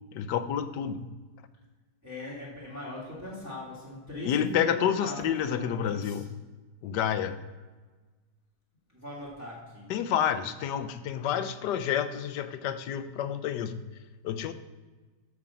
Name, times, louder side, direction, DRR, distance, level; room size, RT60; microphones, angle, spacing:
voice 1, 0.1-1.0 4.2-6.3 6.8-7.4 9.9-13.8 14.2-14.5, left 9 dB, 80° left, 11 dB, 1.3 m, -29 dB
voice 2, 2.0-6.3 8.9-9.9, left 1 dB, 10° right, -8 dB, 2.3 m, -39 dB
10.5 x 3.7 x 7.3 m, 1.3 s
omnidirectional pair, 1.8 m